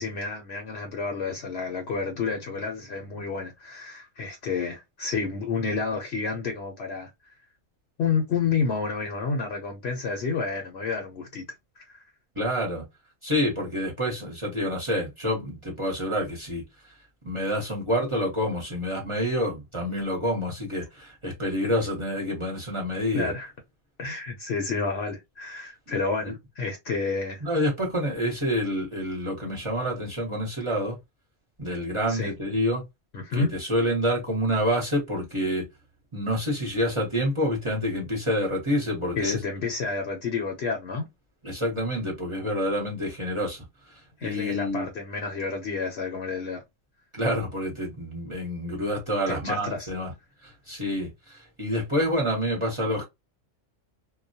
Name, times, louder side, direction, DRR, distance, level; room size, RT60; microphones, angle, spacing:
voice 1, 0.0-7.1 8.0-11.5 11.8-12.0 23.1-23.5 24.0-27.4 32.1-32.3 33.1-33.5 39.2-41.1 44.2-46.6 49.3-49.9, left 4 dB, 60° left, 0.8 m, -30 dB
voice 2, 12.4-12.9 13.2-16.6 17.2-23.3 26.2-26.3 27.4-31.0 31.6-32.8 33.3-35.7 36.1-39.4 41.4-43.6 44.2-44.9 47.1-50.1 50.4-53.0, equal, 25° right, 0.9 m, -27 dB
2.3 x 2.2 x 2.6 m
omnidirectional pair, 1.3 m